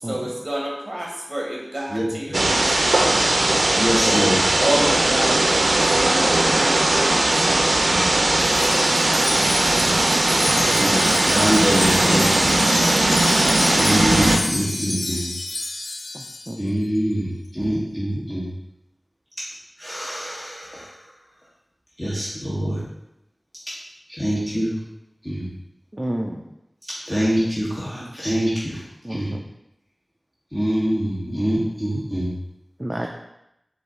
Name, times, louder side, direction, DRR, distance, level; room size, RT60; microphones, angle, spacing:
voice 1, 0.0-3.4 4.6-7.8 8.1-8.2, right 1 dB, 40° right, -3 dB, 0.9 m, -29 dB
voice 2, 1.9-2.4 3.8-4.4 7.9-8.1 9.1-10.0 10.7-12.6 13.7-15.3 16.6-18.5 19.8-21.0 22.0-22.8 24.2-24.8 25.2-25.5 27.1-28.8 29.1-29.3 30.5-32.3, equal, 15° left, -8 dB, 1.2 m, -25 dB
sound 1, 2.3-14.4, right 2 dB, 85° right, 0.4 m, -19 dB
Wind chime, 8.4-16.6, left 2 dB, 65° left, 0.3 m, -29 dB
voice 3, 10.5-11.0 16.5-16.6 25.9-26.4 29.0-29.4 32.8-33.1, right 1 dB, 20° right, 1 dB, 0.4 m, -29 dB
4.7 x 2.6 x 3.7 m, 0.85 s
wide cardioid pair, 40°, 0 cm